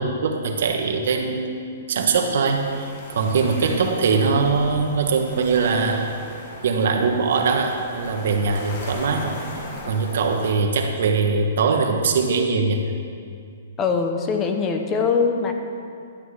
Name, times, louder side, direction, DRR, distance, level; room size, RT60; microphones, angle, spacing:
voice 1, 0.0-6.2 6.6-9.4 9.9-12.8, right 4 dB, 60° right, 3 dB, 1.3 m, -22 dB
sound 1, 2.4-10.5, left 1 dB, 40° left, 1.7 m, -38 dB
voice 2, 13.8-15.5, left 5 dB, 15° left, 4 dB, 0.8 m, -22 dB
11.5 x 9.1 x 4.9 m, 2.4 s
hypercardioid pair, 165°, 0 cm